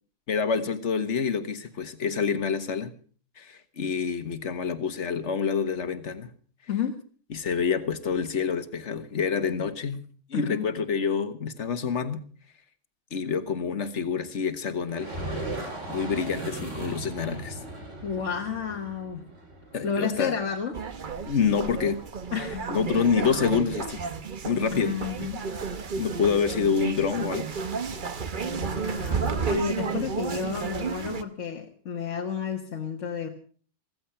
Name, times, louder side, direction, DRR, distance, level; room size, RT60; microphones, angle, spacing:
voice 1, 0.3-2.9 3.4-6.3 7.3-10.0 10.3-12.2 13.1-15.1 15.9-17.6 19.7-20.3 21.2-22.0 22.7-24.0 24.4-25.0 26.0-27.5, left 6 dB, 75° left, 11 dB, 1.6 m, -27 dB
voice 2, 10.3-10.6 18.0-19.2 19.8-20.8 22.3-22.7 24.7-25.5 28.4-33.3, left 6 dB, 90° left, 3 dB, 1.7 m, -31 dB
sound 1, 14.8-20.5, right 1 dB, 85° right, 4.2 m, -37 dB
sound 2, 20.7-31.2, right 5 dB, 45° right, 1.1 m, -32 dB
15.5 x 15.0 x 5.7 m, 0.43 s
omnidirectional pair, 1.2 m